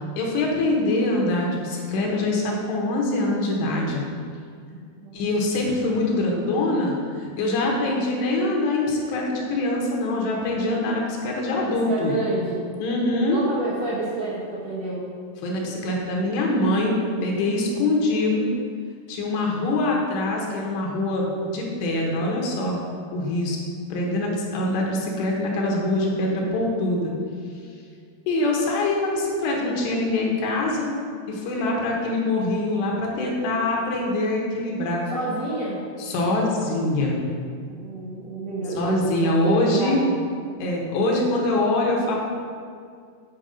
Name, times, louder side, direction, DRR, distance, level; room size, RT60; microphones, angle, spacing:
voice 1, 0.2-4.0 5.1-12.1 12.8-13.4 15.4-18.5 19.1-22.8 23.1-23.6 23.9-27.1 28.3-30.9 31.3-35.0 36.0-37.2 38.7-40.0 40.6-42.2, left 2 dB, 80° left, -1 dB, 3.2 m, -24 dB
voice 2, 4.7-5.2 10.6-10.8 11.6-12.6 13.3-15.1 35.1-35.9 37.7-40.2, right 2 dB, 65° right, -9 dB, 1.6 m, -29 dB
8.9 x 5.9 x 5.3 m, 2.2 s
omnidirectional pair, 5.0 m